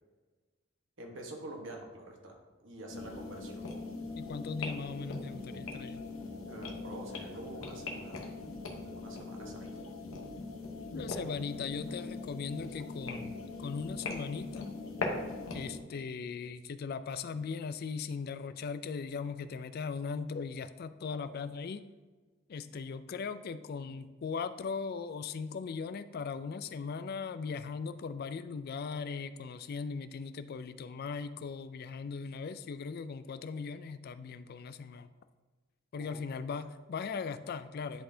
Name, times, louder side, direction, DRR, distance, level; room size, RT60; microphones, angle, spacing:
voice 1, 1.0-2.3 2.6-3.7 6.5-8.3 8.9-9.7 35.9-36.2 36.6-36.7, right 1 dB, 65° right, 1 dB, 1.2 m, -46 dB
sound 1, 2.9-15.8, left 3 dB, 90° left, 1.0 m, -41 dB
voice 2, 4.2-6.0 10.9-14.8 15.5-21.8 22.5-35.1 35.9-38.0, left 5 dB, 50° left, 13 dB, 0.3 m, -39 dB
10.5 x 4.0 x 2.7 m, 1.3 s
head